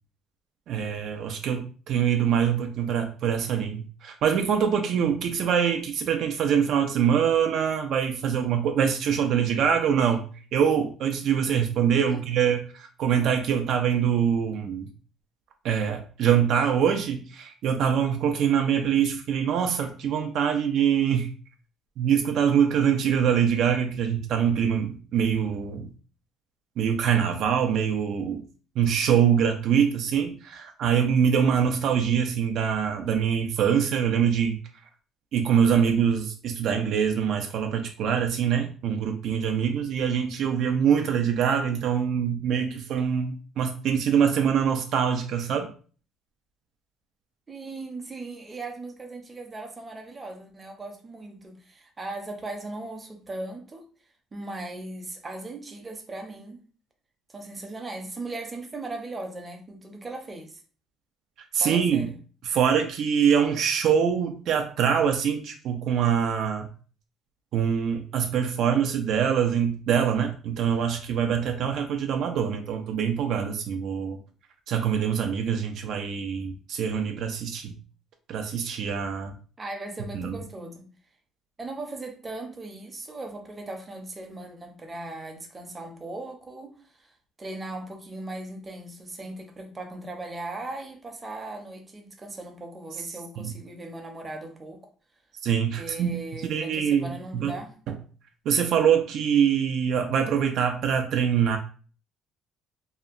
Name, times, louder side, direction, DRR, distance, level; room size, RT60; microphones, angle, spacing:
voice 1, 0.7-10.2 10.5-14.9 15.6-21.3 22.0-25.9 26.8-28.4 28.8-34.6 35.3-45.7 61.5-62.1 62.4-66.7 67.5-74.2 74.7-77.7 78.3-79.3 80.1-80.4 93.4-93.5 95.4-97.5 98.5-101.6, right 8 dB, 65° right, 0.4 m, -24 dB
voice 2, 47.5-53.9 54.3-56.6 57.3-60.6 61.6-62.2 79.6-80.9 81.6-94.8 95.7-97.8, right 2 dB, 25° right, 0.6 m, -38 dB
2.7 x 2.1 x 2.5 m
cardioid pair, 100°, 0 cm